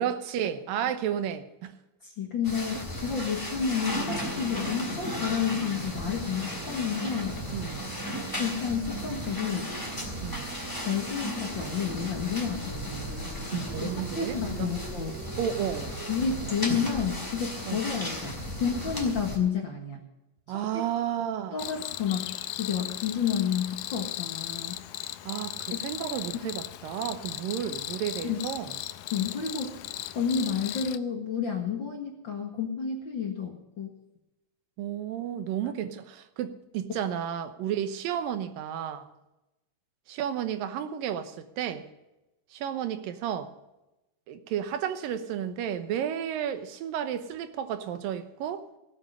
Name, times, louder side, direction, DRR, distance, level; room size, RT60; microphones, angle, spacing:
voice 1, 0.0-1.7 7.5-7.9 10.2-10.5 13.5-14.7 15.4-16.0 17.7-17.8 20.5-21.6 25.2-28.8 34.8-39.1 40.1-41.9 42.5-43.5 44.3-48.6, right 9 dB, 85° right, 10 dB, 2.8 m, -32 dB
voice 2, 2.0-7.4 8.4-9.7 10.8-13.3 13.8-15.2 16.1-20.0 20.5-20.9 21.5-24.8 25.7-25.8 28.2-28.4 29.1-29.8 30.1-33.9, left 7 dB, 45° left, 2 dB, 1.8 m, -30 dB
sound 1, 2.4-19.4, left 1 dB, 5° left, 2.9 m, -35 dB
sound 2, 4.5-16.2, right 8 dB, 65° right, 2.1 m, -45 dB
Cricket, 21.6-31.0, left 13 dB, 80° left, 1.9 m, -37 dB
18.0 x 7.8 x 6.7 m, 0.96 s
omnidirectional pair, 3.9 m